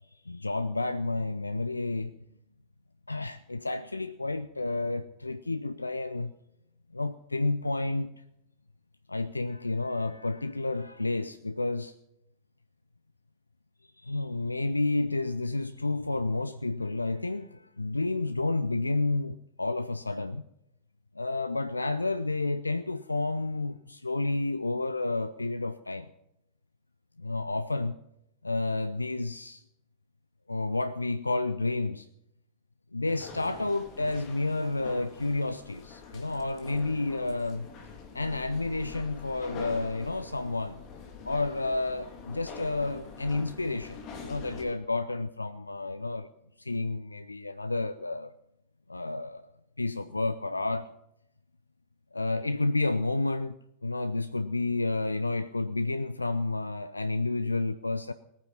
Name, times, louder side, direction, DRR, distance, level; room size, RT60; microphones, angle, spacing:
voice 1, 0.2-2.1 3.1-6.3 6.9-8.1 9.1-11.9 14.0-20.4 21.1-26.1 27.2-28.0 28.4-29.6 30.5-32.1 32.9-37.7 38.1-40.8 41.2-46.3 46.6-48.3 48.9-49.5 49.8-50.9 52.1-53.6 53.8-58.1, left 2 dB, 80° left, 0.4 m, -30 dB
sound 1, 33.0-44.6, left 5 dB, 40° left, 2.5 m, -45 dB
19.5 x 9.4 x 5.6 m
figure-of-eight pair, 90°, 0 cm